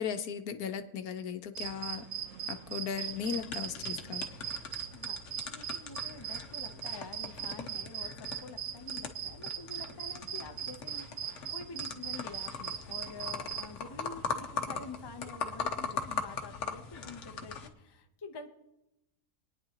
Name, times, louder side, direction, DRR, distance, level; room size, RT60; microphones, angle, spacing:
voice 1, 0.0-2.1 2.5-4.3, left 7 dB, 75° left, 9 dB, 1.2 m, -37 dB
sound 1, 1.5-13.7, right 10 dB, 65° right, 1.2 m, -39 dB
sound 2, 3.1-17.7, left 5 dB, 55° left, 1.1 m, -41 dB
voice 2, 4.9-18.5, left 4 dB, 25° left, 5 dB, 0.5 m, -47 dB
27.5 x 9.5 x 2.9 m, 0.94 s
omnidirectional pair, 1.6 m